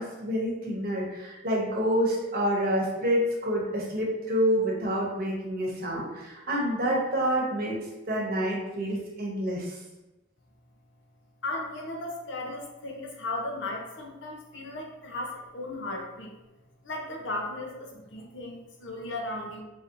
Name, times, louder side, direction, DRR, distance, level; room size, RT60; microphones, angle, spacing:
voice 1, 0.0-7.8 8.1-9.8, equal, 50° right, -2 dB, 0.9 m, -28 dB
voice 2, 11.4-16.3 16.8-19.6, left 2 dB, 65° left, 0 dB, 0.7 m, -36 dB
4.1 x 2.9 x 2.6 m, 1.0 s
head